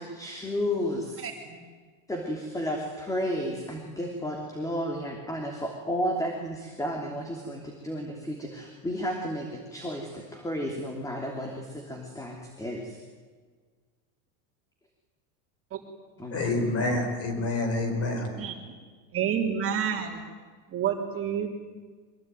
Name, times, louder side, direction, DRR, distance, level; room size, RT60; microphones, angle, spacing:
voice 1, 0.0-1.3 2.1-13.0 16.2-17.0, equal, 10° left, 2 dB, 3.0 m, -33 dB
voice 2, 1.2-1.6 15.7-15.8 18.4-18.6 19.1-20.2 20.7-21.5, right 8 dB, 35° right, 2 dB, 3.4 m, -29 dB
voice 3, 16.3-18.4, left 2 dB, 35° left, 6 dB, 5.2 m, -28 dB
23.5 x 21.0 x 9.4 m, 1.5 s
cardioid pair, 145°, 40 cm